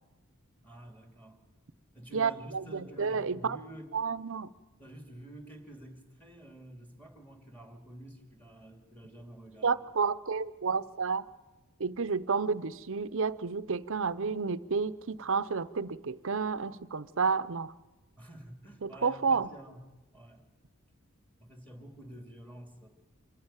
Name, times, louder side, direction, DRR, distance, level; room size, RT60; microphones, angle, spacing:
voice 1, 0.6-1.4 1.9-3.9 4.8-9.8 18.2-19.8 20.1-20.5 21.4-22.9, right 1 dB, 5° left, 5 dB, 2.6 m, -49 dB
voice 2, 2.1-3.6 3.9-4.5 9.6-11.3 11.8-17.7 18.8-19.5, right 5 dB, 60° right, 15 dB, 0.7 m, -30 dB
26.0 x 14.5 x 9.0 m, 1.2 s
head